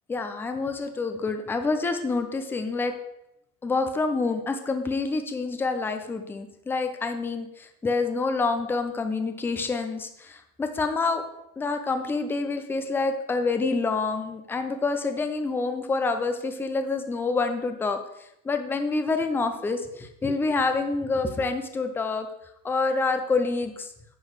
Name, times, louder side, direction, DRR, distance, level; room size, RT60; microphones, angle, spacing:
voice 1, 0.1-2.9 3.6-11.2 11.6-18.0 18.4-22.3 22.6-23.9, left 3 dB, 5° left, 7 dB, 0.3 m, -27 dB
9.6 x 3.9 x 6.3 m, 0.84 s
cardioid pair, 160°, 42 cm